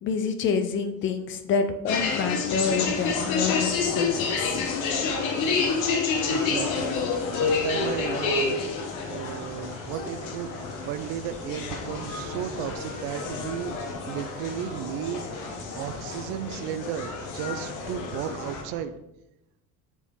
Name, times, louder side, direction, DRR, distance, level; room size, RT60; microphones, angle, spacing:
voice 1, 0.0-4.7, left 5 dB, 35° left, 8 dB, 0.5 m, -27 dB
sound 1, 1.9-18.6, left 5 dB, 60° left, 1.1 m, -29 dB
sound 2, 2.5-18.8, equal, 5° right, 2.1 m, -45 dB
voice 2, 3.0-3.4 6.3-7.0 7.3-8.6 9.1-13.7 14.1-18.9, right 10 dB, 75° right, 12 dB, 0.6 m, -34 dB
7.0 x 4.5 x 3.6 m, 0.88 s
cardioid pair, 170°, 35 cm